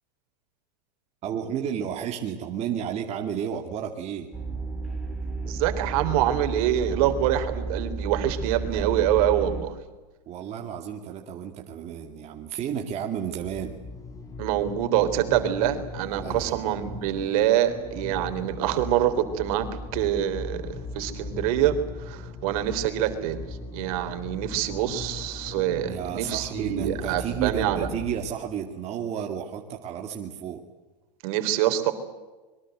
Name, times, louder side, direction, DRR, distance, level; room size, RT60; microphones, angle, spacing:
voice 1, 1.2-4.3 10.3-13.8 16.1-17.0 25.8-30.6, right 8 dB, 30° right, 2 dB, 2.5 m, -32 dB
sound 1, 4.3-9.6, right 3 dB, ahead, 4.5 m, -32 dB
voice 2, 5.4-9.7 14.4-19.7 19.9-23.4 23.7-27.9 31.2-31.9, right 11 dB, 55° right, 8 dB, 3.7 m, -25 dB
sound 2, 13.4-28.3, left 3 dB, 15° left, 3.5 m, -39 dB
25.5 x 23.0 x 8.0 m, 1.2 s
supercardioid pair, 140°, 21 cm